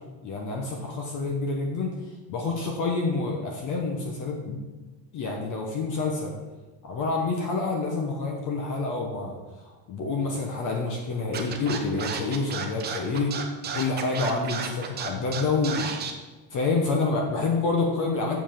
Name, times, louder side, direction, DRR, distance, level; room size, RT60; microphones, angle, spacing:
voice 1, 0.2-2.0 2.3-4.6 5.1-6.3 6.8-9.4 9.9-13.4 13.7-15.9 16.5-18.4, left 3 dB, 40° left, 1 dB, 1.0 m, -27 dB
Scratching (performance technique), 11.3-16.1, right 7 dB, 20° right, 0.6 m, -32 dB
7.2 x 5.3 x 5.8 m, 1.2 s
cardioid pair, 170°, 50 cm